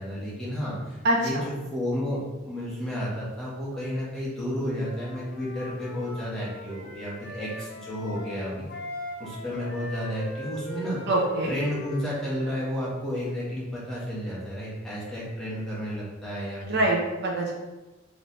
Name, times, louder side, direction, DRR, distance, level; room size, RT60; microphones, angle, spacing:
voice 1, 0.0-8.6 9.2-11.0 11.4-16.8, equal, 5° left, -8 dB, 1.3 m, -32 dB
voice 2, 1.0-1.4 11.1-11.5 16.6-17.5, right 1 dB, 55° right, -1 dB, 0.7 m, -24 dB
Wind instrument woodwind instrument, 4.8-12.8, left 1 dB, 55° left, 1.0 m, -40 dB
3.2 x 3.2 x 4.1 m, 1.1 s
head